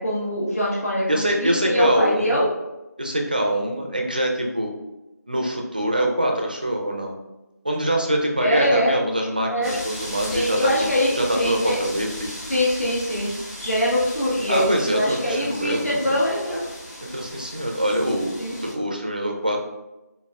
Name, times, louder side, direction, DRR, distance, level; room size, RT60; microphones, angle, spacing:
voice 1, 0.0-2.5 8.4-8.9 9.5-9.8 10.3-11.8 12.5-13.3 13.6-16.6 18.4-18.6, equal, 55° left, -6 dB, 1.4 m, -23 dB
voice 2, 1.1-2.4 3.0-4.7 5.3-7.2 7.6-10.9 11.2-12.3 14.5-16.2 17.0-18.3 18.6-19.6, right 1 dB, 30° right, 2 dB, 0.4 m, -24 dB
sound 1, 9.6-18.7, equal, 25° left, 1.5 m, -37 dB
4.1 x 3.4 x 2.2 m, 1.0 s
figure-of-eight pair, 170°, 10 cm